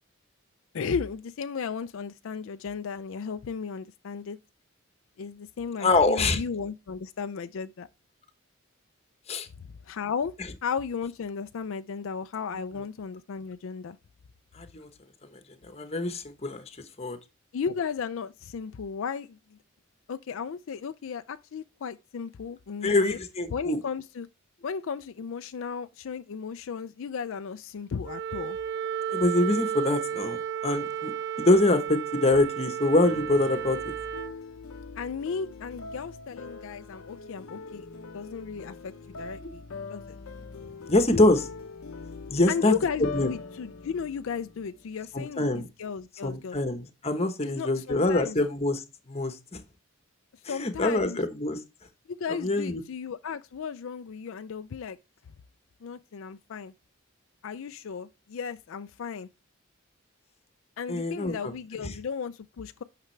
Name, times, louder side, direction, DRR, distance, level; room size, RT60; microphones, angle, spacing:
voice 1, 0.7-4.4 5.2-7.9 9.8-10.3 10.6-14.0 17.5-19.6 20.1-23.2 23.5-24.3 24.6-28.6 35.0-37.9 38.1-39.6 39.9-40.2 42.5-46.6 47.4-48.4 50.5-51.2 52.1-55.0 55.8-56.7 57.4-59.3 60.8-62.8, left 6 dB, 70° left, 0.4 m, -35 dB
voice 2, 5.8-6.4 9.3-9.5 14.5-14.9 15.6-16.6 17.0-17.2 22.8-23.8 29.1-31.1 31.4-33.9 39.4-39.5 40.9-41.5 42.3-42.7 43.0-43.3 45.1-45.7 46.2-49.6 50.4-51.6 52.4-52.8 60.9-61.5 61.8-62.0, left 2 dB, 30° left, 1.0 m, -25 dB
Wind instrument woodwind instrument, 28.0-34.3, right 9 dB, 50° right, 0.4 m, -33 dB
sound 1, 33.0-45.2, left 4 dB, 90° left, 0.8 m, -42 dB
8.9 x 5.9 x 3.3 m
head